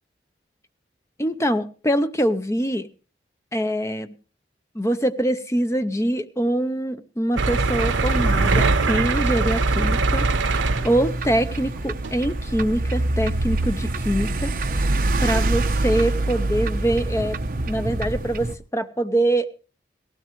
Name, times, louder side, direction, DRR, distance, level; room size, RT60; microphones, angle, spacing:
voice 1, 1.2-2.9 3.5-4.1 4.7-14.5 15.2-17.4 17.7-19.5, right 1 dB, 15° left, 9 dB, 0.7 m, -24 dB
sound 1, 7.4-11.3 12.0-12.2 12.6-12.7, right 3 dB, 90° right, 0.7 m, -22 dB
sound 2, 7.6-18.5, right 2 dB, 50° right, 0.8 m, -26 dB
18.0 x 16.0 x 3.1 m, 0.35 s
head